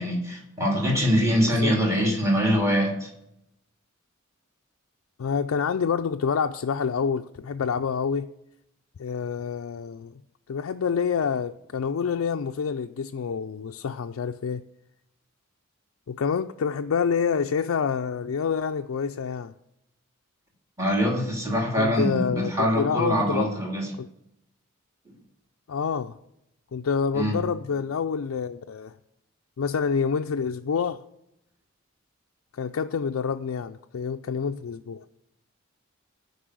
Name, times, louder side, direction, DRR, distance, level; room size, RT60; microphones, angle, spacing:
voice 1, 0.0-3.1 20.8-23.9 27.1-27.3, equal, 15° right, 2.3 m, -24 dB
voice 2, 1.5-2.2 5.2-8.3 9.0-10.1 10.5-14.6 16.1-19.5 21.8-23.5 24.0-24.1 25.7-26.2 26.7-28.9 29.6-31.0 32.5-35.0, left 6 dB, 75° left, 0.4 m, -27 dB
13.5 x 5.4 x 7.7 m
head